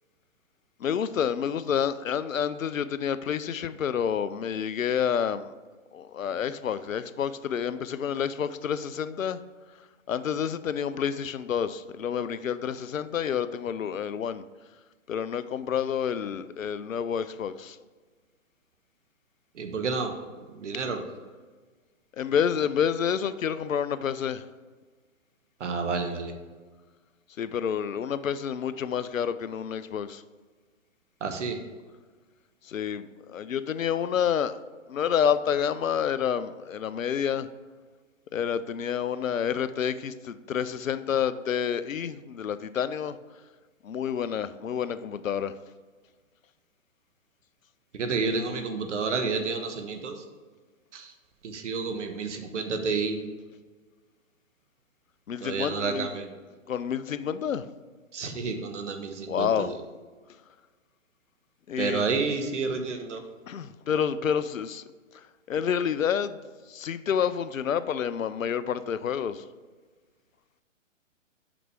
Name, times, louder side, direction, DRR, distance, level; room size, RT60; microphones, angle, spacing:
voice 1, 0.8-5.5 5.9-9.4 10.1-14.4 15.1-17.8 22.2-24.4 27.4-30.2 32.7-34.6 34.9-37.5 38.3-43.2 43.8-45.5 55.3-56.1 56.7-57.6 59.3-59.7 61.7-62.1 63.5-64.8 65.5-66.4 66.7-69.4, left 8 dB, 85° left, 14 dB, 0.6 m, -29 dB
voice 2, 19.6-20.1 20.6-21.0 25.6-26.3 31.2-31.6 47.9-50.1 50.9-51.0 51.4-53.1 55.4-56.2 58.1-59.5 61.8-63.2, right 4 dB, 65° right, 6 dB, 1.2 m, -29 dB
6.1 x 5.9 x 4.7 m, 1.4 s
figure-of-eight pair, 130°, 39 cm